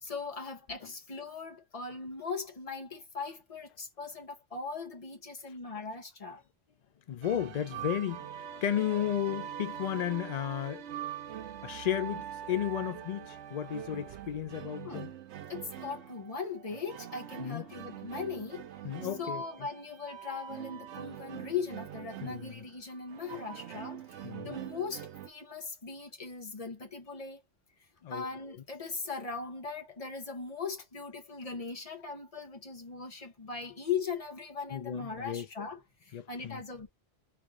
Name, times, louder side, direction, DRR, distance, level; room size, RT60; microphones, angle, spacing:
voice 1, 0.0-6.4 14.8-15.1 15.5-18.6 19.2-27.4 28.1-36.9, left 5 dB, 30° left, 1.1 m, -39 dB
voice 2, 7.1-10.8 11.6-15.1 17.4-17.6 18.8-19.4 22.2-22.6 24.2-24.5 28.0-28.3 34.7-35.5 36.1-36.6, left 10 dB, 70° left, 0.4 m, -34 dB
sound 1, 7.2-25.3, right 10 dB, 75° right, 0.9 m, -43 dB
3.5 x 3.4 x 3.6 m
omnidirectional pair, 1.2 m